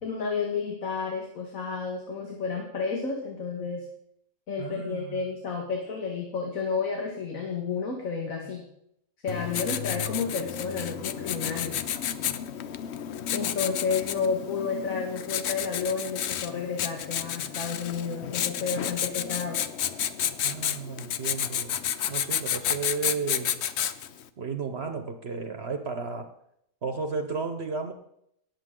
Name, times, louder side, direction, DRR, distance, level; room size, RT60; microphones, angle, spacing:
voice 1, 0.0-3.8 4.5-8.7 9.2-11.8 13.3-19.6, left 5 dB, 85° left, 1 dB, 2.1 m, -31 dB
voice 2, 4.6-5.3 20.4-21.8 22.1-23.5 24.4-26.3 26.8-27.9, right 4 dB, 55° right, 7 dB, 1.1 m, -33 dB
Writing, 9.3-24.2, left 9 dB, 60° left, 0.8 m, -31 dB
19.0 x 7.7 x 3.8 m, 0.74 s
omnidirectional pair, 1.4 m